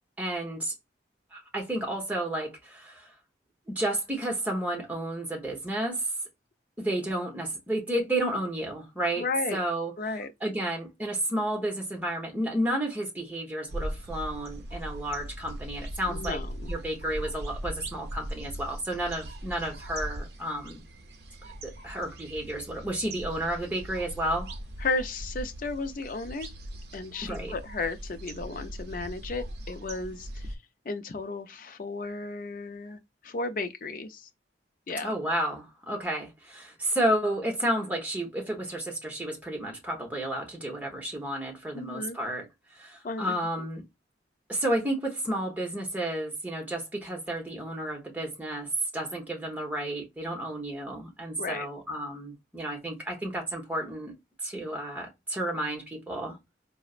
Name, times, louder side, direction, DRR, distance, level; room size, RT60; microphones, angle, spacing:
voice 1, 0.2-0.7 1.3-3.1 3.7-6.1 6.8-9.2 9.5-9.9 10.4-20.8 21.4-24.5 27.2-27.5 35.0-42.5 42.7-43.8 44.5-54.1 54.4-56.4, right 1 dB, 10° right, 0.9 m, -31 dB
voice 2, 9.2-9.6 10.0-10.3 16.1-16.7 24.8-26.5 26.9-30.5 30.9-34.3 34.9-35.1 41.7-42.2 43.0-43.3 51.4-51.7, left 3 dB, 50° left, 0.5 m, -34 dB
sound 1, 13.7-30.6, right 1 dB, 60° right, 0.6 m, -40 dB
4.1 x 2.0 x 2.4 m
head